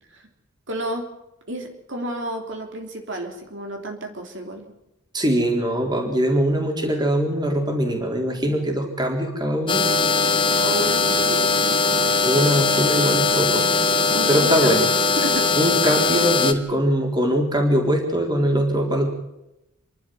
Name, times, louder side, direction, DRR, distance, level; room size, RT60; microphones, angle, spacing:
voice 1, 0.7-1.1 1.5-4.6 10.6-11.8 14.1-14.9 15.1-15.5, right 1 dB, 55° right, 3 dB, 3.3 m, -31 dB
voice 2, 5.1-9.8 12.2-13.6 14.3-14.8 15.6-19.1, equal, 20° right, 2 dB, 4.0 m, -22 dB
sound 1, 9.7-16.5, left 3 dB, 25° left, 1.3 m, -20 dB
29.0 x 12.0 x 7.8 m, 0.91 s
head